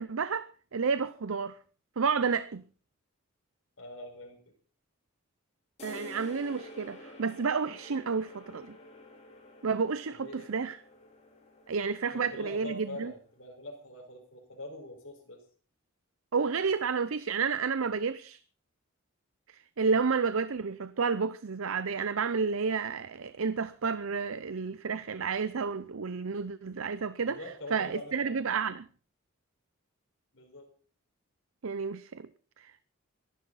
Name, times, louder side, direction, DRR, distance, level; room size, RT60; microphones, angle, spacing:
voice 1, 0.0-1.6 2.0-2.6 5.8-8.8 9.6-10.8 11.7-13.1 16.3-18.4 19.5-27.4 27.7-28.8 31.6-32.3 32.6-32.7, right 5 dB, 70° right, 0.6 m, -31 dB
voice 2, 3.8-4.5 10.1-10.6 12.1-15.4 27.2-28.4 30.3-30.7, left 1 dB, 65° left, 5.3 m, -44 dB
sound 1, 5.8-13.3, left 1 dB, 30° left, 3.8 m, -50 dB
25.0 x 11.5 x 4.2 m
head